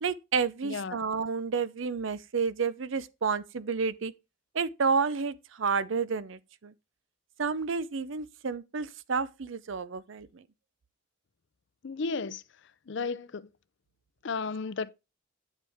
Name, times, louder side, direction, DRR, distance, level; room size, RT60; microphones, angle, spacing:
voice 1, 0.0-4.1 4.5-6.7 7.4-10.3, right 5 dB, 65° right, 0.6 m, -30 dB
voice 2, 0.6-1.0 11.8-12.4 12.9-13.5 14.2-14.9, left 4 dB, 60° left, 0.5 m, -33 dB
9.4 x 7.3 x 3.5 m
head